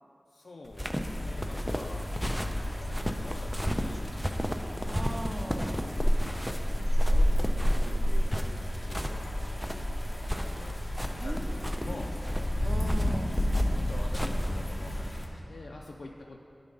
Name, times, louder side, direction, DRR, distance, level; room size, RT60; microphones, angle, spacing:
voice 1, 0.3-2.1 2.6-4.1 6.3-12.1 13.7-16.4, left 2 dB, 80° left, -1 dB, 0.3 m, -47 dB
sound 1, 0.7-14.8, equal, ahead, 0.4 m, -35 dB
sound 2, 1.0-15.3, equal, 25° left, 1.0 m, -30 dB
voice 2, 4.8-5.8 11.2-12.0 12.6-13.5, right 1 dB, 60° right, 2 dB, 0.6 m, -39 dB
9.4 x 3.6 x 5.2 m, 2.9 s
wide cardioid pair, 75°, 0 cm